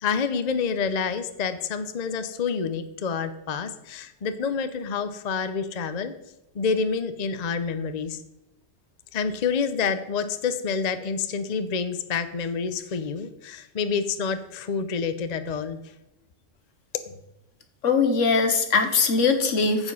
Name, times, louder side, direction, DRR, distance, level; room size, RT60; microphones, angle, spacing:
voice 1, 0.0-6.1 6.5-8.2 9.1-15.8, left 5 dB, 40° left, 10 dB, 0.7 m, -28 dB
voice 2, 17.8-19.9, left 4 dB, 75° left, 7 dB, 1.5 m, -21 dB
14.5 x 5.0 x 5.6 m, 0.89 s
omnidirectional pair, 1.3 m